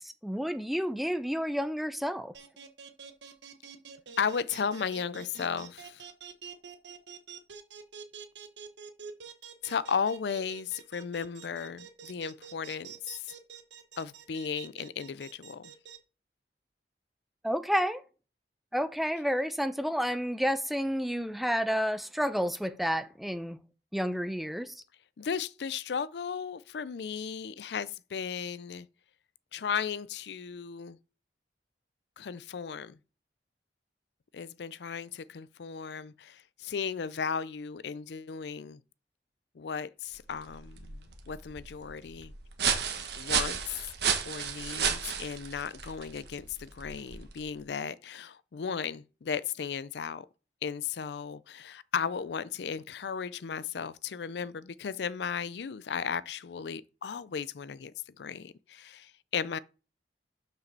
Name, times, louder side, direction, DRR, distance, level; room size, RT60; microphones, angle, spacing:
voice 1, 0.0-2.3 17.4-18.0 18.7-23.6 23.9-24.7, equal, ahead, 0.5 m, -30 dB
sound 1, 2.3-16.0, right 7 dB, 90° right, 1.1 m, -47 dB
voice 2, 4.2-6.0 9.6-13.3 14.0-15.7 25.2-28.9 29.5-31.0 32.2-33.0 34.3-38.8 39.6-42.3 43.2-43.8 44.2-50.3 50.6-59.6, left 6 dB, 75° left, 0.4 m, -35 dB
sound 2, 40.2-47.6, right 7 dB, 70° right, 1.4 m, -33 dB
6.4 x 5.0 x 6.6 m
head